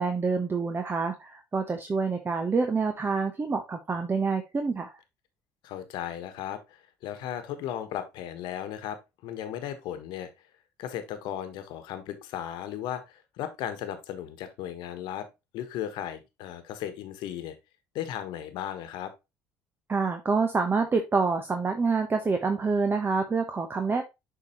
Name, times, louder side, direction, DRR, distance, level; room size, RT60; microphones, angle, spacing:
voice 1, 0.0-4.9 19.9-24.0, right 4 dB, 25° right, 6 dB, 0.9 m, -27 dB
voice 2, 5.6-10.3 10.8-15.3 15.5-17.6 17.9-19.1, left 10 dB, 70° left, 10 dB, 1.2 m, -36 dB
6.9 x 4.7 x 3.0 m, 0.23 s
hypercardioid pair, 70°, 8 cm